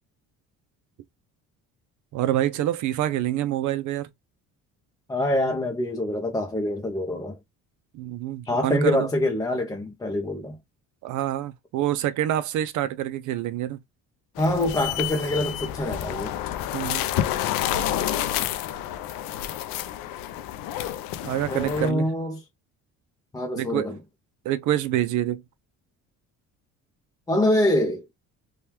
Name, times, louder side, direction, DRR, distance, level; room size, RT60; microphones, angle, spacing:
voice 1, 2.1-4.1 7.9-9.1 11.0-13.8 16.7-17.0 21.2-22.1 23.6-23.9 24.5-25.4, right 13 dB, 65° right, 0.5 m, -26 dB
voice 2, 5.1-7.4 8.5-10.6 14.4-16.3 21.5-22.4 23.3-24.0 27.3-28.1, left 1 dB, 10° left, 0.5 m, -25 dB
sound 1, 14.4-21.9, left 11 dB, 85° left, 0.5 m, -29 dB
3.4 x 2.3 x 2.8 m
cardioid pair, 145°, 33 cm